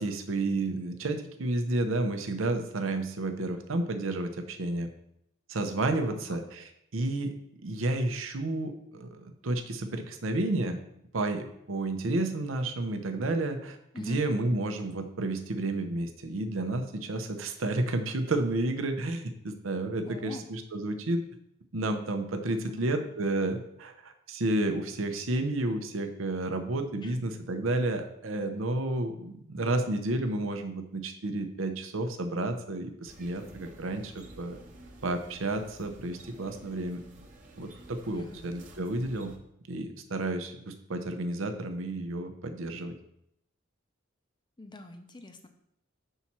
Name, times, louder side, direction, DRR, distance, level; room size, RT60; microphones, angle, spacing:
voice 1, 0.0-4.9 5.5-7.3 7.6-10.8 11.1-21.2 21.7-34.6 35.0-37.0 37.6-39.3 39.7-42.9, right 2 dB, 75° right, 7 dB, 0.7 m, -31 dB
voice 2, 6.1-6.4 13.9-14.2 20.0-20.5 22.4-22.8 27.0-27.3 38.1-38.5 44.6-45.5, left 2 dB, 20° left, 6 dB, 0.6 m, -43 dB
sound 1, 33.0-39.4, right 1 dB, 40° right, 1.0 m, -51 dB
5.6 x 4.3 x 5.9 m, 0.76 s
head